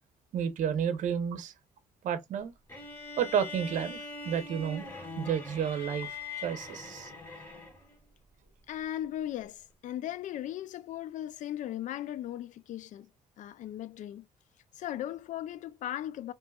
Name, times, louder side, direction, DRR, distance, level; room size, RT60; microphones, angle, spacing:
voice 1, 0.3-1.5 2.0-2.5 3.2-4.9 5.2-7.1, right 8 dB, 70° right, 0.8 m, -31 dB
sound 1, 2.7-8.0, left 3 dB, 15° left, 2.2 m, -42 dB
voice 2, 8.7-13.1 13.4-14.3 14.7-16.3, left 12 dB, 70° left, 0.4 m, -37 dB
4.4 x 3.0 x 2.3 m
cardioid pair, 85°, 13 cm